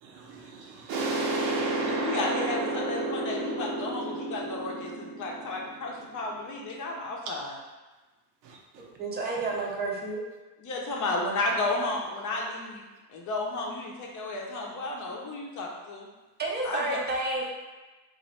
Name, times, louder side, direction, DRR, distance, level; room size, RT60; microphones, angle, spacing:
voice 1, 0.0-2.0 7.2-7.3 8.4-8.9, right 4 dB, 85° right, 1.0 m, -47 dB
sound 1, 0.9-6.4, right 2 dB, 55° right, 0.8 m, -31 dB
voice 2, 1.8-7.4 10.6-12.8 13.1-16.1 16.6-17.0, left 2 dB, 35° left, 0.7 m, -33 dB
voice 3, 8.8-10.2 16.4-17.4, right 2 dB, 20° right, 0.6 m, -30 dB
3.0 x 2.6 x 4.3 m
supercardioid pair, 125°, 50 cm